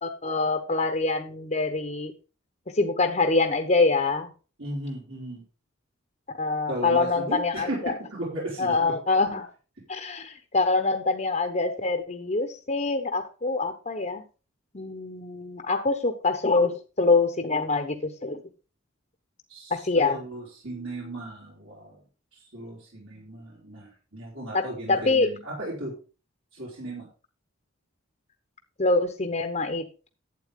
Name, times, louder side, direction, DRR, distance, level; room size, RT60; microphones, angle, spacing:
voice 1, 0.0-2.1 2.7-4.3 6.4-7.9 8.6-9.5 9.9-14.2 14.7-18.4 19.7-20.2 24.5-25.3 28.8-30.1, left 3 dB, 35° left, 5 dB, 1.0 m, -25 dB
voice 2, 4.6-5.4 6.7-9.0 19.5-22.0 22.5-25.9 26.5-27.1, right 1 dB, 70° right, -4 dB, 4.5 m, -36 dB
12.0 x 8.5 x 3.7 m, 0.34 s
head